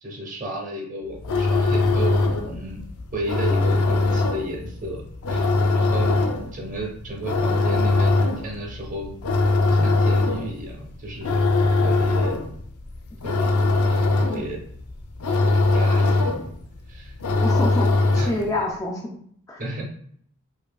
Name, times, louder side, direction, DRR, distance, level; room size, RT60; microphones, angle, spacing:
voice 1, 0.0-2.8 3.1-5.0 5.3-5.5 5.7-6.2 6.5-9.1 9.6-11.3 11.8-12.4 13.2-14.6 15.7-16.3 16.9-17.1 18.1-18.7 19.6-19.8, right 1 dB, 35° right, -1 dB, 0.9 m, -33 dB
sound 1, 1.1-18.6, left 2 dB, 80° left, 0.5 m, -22 dB
voice 2, 17.4-17.9 18.1-19.0 19.5-19.6, left 2 dB, 15° left, -1 dB, 0.4 m, -26 dB
4.8 x 2.6 x 2.3 m, 0.63 s
head